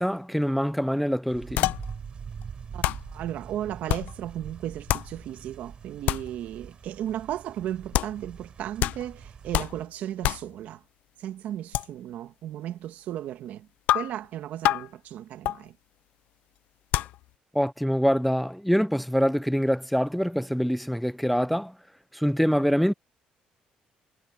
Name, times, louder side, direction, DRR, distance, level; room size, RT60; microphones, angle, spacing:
voice 1, 0.0-1.8 17.5-21.8 22.1-22.9, equal, ahead, 0.4 m, -25 dB
sound 1, 1.3-9.8, right 6 dB, 40° right, 4.4 m, -43 dB
sound 2, 1.6-2.0 2.4-2.5 2.8-3.2 3.9-4.3 4.9-5.2 6.1-6.4 7.9-8.3 8.8-9.2 9.5-9.9 10.2-10.6 11.7-11.9 13.9-14.3 14.6-14.9 15.4-15.6 16.9-17.2, left 15 dB, 80° left, 0.5 m, -27 dB
voice 2, 2.7-10.8 11.2-13.7 13.9-15.8, right 11 dB, 75° right, 1.8 m, -35 dB
cardioid pair, 130°, 3 cm